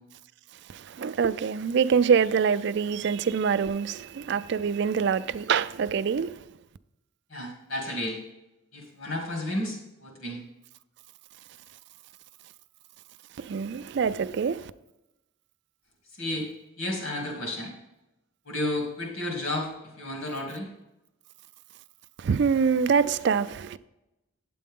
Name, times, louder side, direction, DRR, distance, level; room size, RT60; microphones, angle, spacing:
voice 1, 0.7-6.4 13.4-14.7 22.2-23.8, right 6 dB, 55° right, 0.3 m, -25 dB
voice 2, 7.3-8.2 8.7-10.4 16.2-16.5 16.8-17.7 18.4-19.7 20.0-20.7, left 1 dB, 70° left, 2.5 m, -32 dB
9.1 x 7.7 x 3.7 m
head